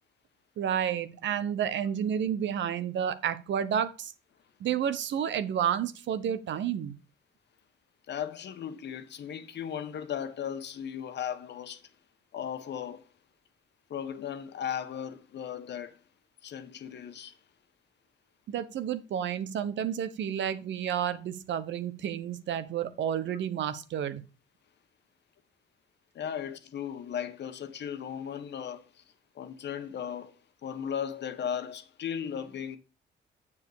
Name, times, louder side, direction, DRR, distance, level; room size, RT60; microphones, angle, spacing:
voice 1, 0.6-4.1 4.6-7.0 18.5-24.2, right 9 dB, 70° right, 1.0 m, -30 dB
voice 2, 8.1-11.8 12.3-13.1 13.9-16.0 16.4-17.3 26.1-28.9 29.3-30.3 30.6-32.8, left 8 dB, 65° left, 1.2 m, -36 dB
7.3 x 6.9 x 4.9 m
supercardioid pair, 60°, 20 cm